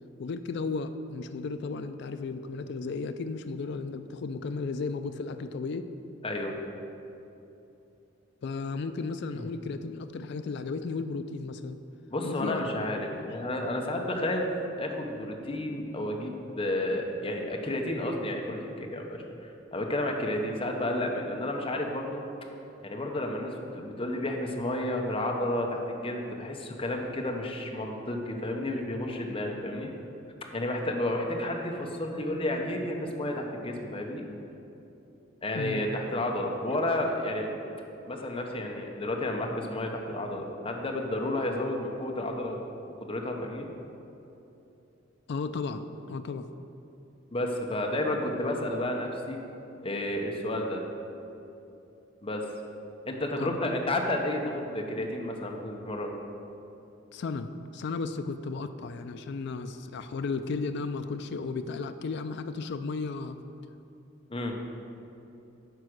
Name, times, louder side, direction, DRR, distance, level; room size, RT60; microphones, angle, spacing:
voice 1, 0.2-5.9 8.4-11.8 12.2-12.7 35.5-35.8 45.3-46.5 53.4-53.7 57.1-63.4, left 4 dB, 60° left, 9 dB, 0.4 m, -34 dB
voice 2, 6.2-6.6 9.4-9.5 12.1-14.5 14.8-22.2 22.8-29.9 30.5-34.3 35.4-37.5 38.1-42.6 43.0-43.7 47.3-49.4 49.8-50.8 52.2-52.4 53.1-56.1 64.3-64.6, left 1 dB, 30° left, 1 dB, 0.8 m, -31 dB
9.4 x 4.8 x 6.3 m, 2.9 s
head